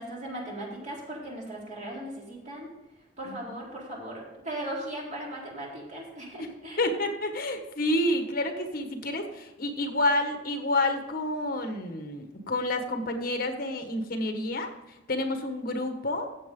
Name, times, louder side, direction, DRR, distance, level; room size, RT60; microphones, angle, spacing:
voice 1, 0.0-2.7 3.2-6.8, right 1 dB, 40° right, -3 dB, 4.0 m, -38 dB
voice 2, 6.8-16.3, left 1 dB, 55° left, 6 dB, 1.4 m, -29 dB
15.0 x 7.6 x 3.8 m, 1.1 s
head